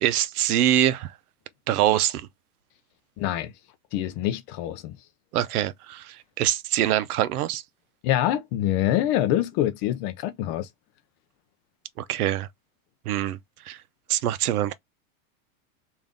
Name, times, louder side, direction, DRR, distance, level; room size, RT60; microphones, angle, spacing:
voice 1, 0.0-1.1 1.7-2.2 5.3-7.6 12.0-12.5 13.1-13.4 13.7-13.8 14.1-14.7, right 12 dB, 85° right, 0.7 m, -24 dB
voice 2, 3.2-3.5 3.9-5.0 8.0-10.7, left 12 dB, 35° left, 0.4 m, -25 dB
3.4 x 2.6 x 3.6 m
supercardioid pair, 140°, 43 cm